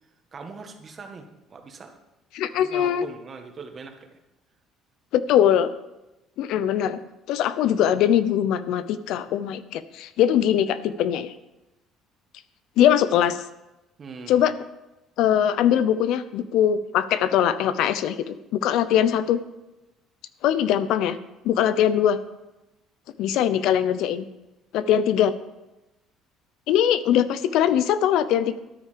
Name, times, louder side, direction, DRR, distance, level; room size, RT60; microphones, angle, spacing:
voice 1, 0.3-2.0 2.5-4.2 14.0-14.4, right 4 dB, 35° right, 5 dB, 1.6 m, -41 dB
voice 2, 2.3-3.1 5.1-5.7 6.4-7.0 7.3-11.3 12.8-13.4 14.3-14.5 15.2-19.4 20.4-21.2 21.4-22.2 23.2-24.2 24.7-25.3 26.7-28.6, left 10 dB, 70° left, 14 dB, 0.7 m, -21 dB
13.0 x 9.7 x 5.1 m, 0.98 s
cardioid pair, 130°, 0 cm